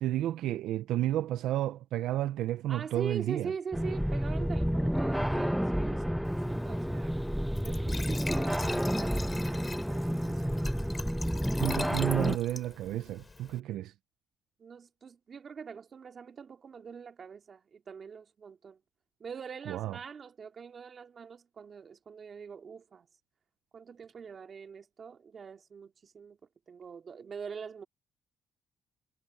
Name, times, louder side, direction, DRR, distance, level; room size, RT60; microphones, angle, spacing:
voice 1, 0.0-3.5 11.6-13.9 19.7-20.0, right 13 dB, 85° right, 0.6 m, -31 dB
voice 2, 2.7-7.1 7.6-10.7 14.6-18.8 19.2-23.1 23.7-26.4 26.7-27.9, right 6 dB, 45° right, 2.9 m, -43 dB
sound 1, 3.7-12.4, equal, ahead, 1.1 m, -30 dB
Glass / Trickle dribble / Fill (with liquid), 6.3-13.6, left 3 dB, 25° left, 6.4 m, -44 dB
cardioid pair, 90°, 0 cm